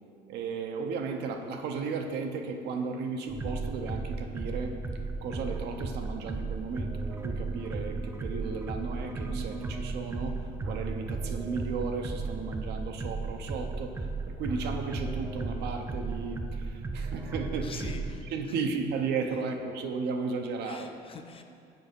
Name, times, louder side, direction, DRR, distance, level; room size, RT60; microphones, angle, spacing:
voice 1, 0.3-4.7 5.2-14.0 14.3-17.9 18.3-20.9, right 4 dB, 75° right, 4 dB, 0.7 m, -34 dB
sound 1, 3.3-18.1, right 3 dB, 15° right, 0.5 m, -35 dB
voice 2, 17.6-18.7 19.2-19.5 20.6-21.4, left 5 dB, 35° left, 6 dB, 0.6 m, -45 dB
6.7 x 4.7 x 5.2 m, 2.4 s
cardioid pair, 110°, 17 cm